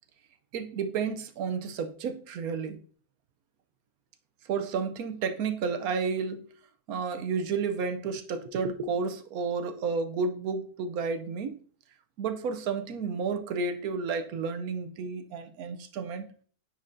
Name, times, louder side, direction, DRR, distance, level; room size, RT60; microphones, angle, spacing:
voice 1, 0.5-2.8 4.5-6.4 6.9-11.6 12.2-16.3, right 5 dB, 70° right, 1.1 m, -31 dB
9.3 x 4.3 x 2.6 m
omnidirectional pair, 1.7 m